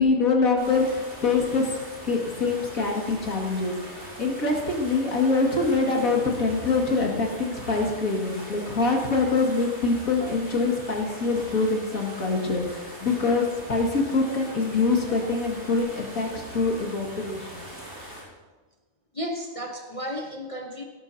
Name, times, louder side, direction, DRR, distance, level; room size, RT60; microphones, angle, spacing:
voice 1, 0.0-1.8 2.0-3.7 4.2-17.7, left 3 dB, 80° left, -1 dB, 2.6 m, -24 dB
sound 1, 0.6-18.2, equal, 55° right, 5.4 m, -42 dB
voice 2, 19.1-20.8, equal, 25° left, 1 dB, 0.9 m, -33 dB
17.5 x 12.0 x 2.8 m, 1.3 s
omnidirectional pair, 1.4 m